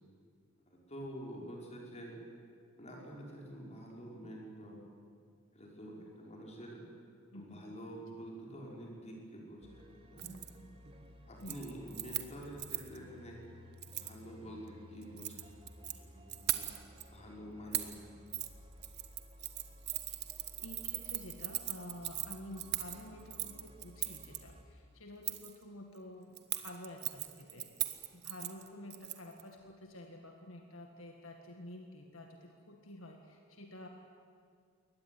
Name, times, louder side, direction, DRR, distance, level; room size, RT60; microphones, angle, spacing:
voice 1, 0.7-2.2 2.8-4.8 5.5-6.8 7.3-10.4 11.3-13.4 14.0-16.7 17.1-17.9, equal, 35° left, -1 dB, 5.8 m, -48 dB
voice 2, 7.3-7.8 11.4-11.6 20.1-20.3 20.6-33.9, left 1 dB, 75° left, 3 dB, 1.9 m, -50 dB
sound 1, 9.6-24.6, left 1 dB, 25° right, 2.0 m, -56 dB
Keys jangling, 10.2-10.5 10.9-11.1 11.4-13.0 13.8-14.2 15.0-16.0 16.3-17.0 17.7-18.0 18.3-18.5 18.8-24.4 25.2-25.6 26.4-29.4 29.7-29.8, right 14 dB, 55° right, 1.3 m, -39 dB
22.5 x 19.0 x 9.5 m, 2.2 s
head